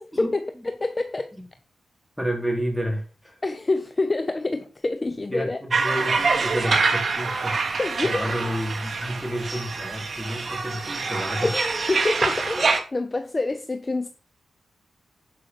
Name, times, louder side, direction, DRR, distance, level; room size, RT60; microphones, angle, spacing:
voice 1, 0.0-1.3 3.4-5.6 7.8-8.3 11.4-14.1, left 2 dB, 25° left, 0.8 m, -27 dB
voice 2, 2.2-3.4 5.3-7.6 8.0-11.6, equal, ahead, 3.8 m, -30 dB
sound 1, 5.7-12.8, right 4 dB, 45° right, 1.9 m, -25 dB
11.5 x 5.6 x 5.3 m
wide cardioid pair, 105°, 0 cm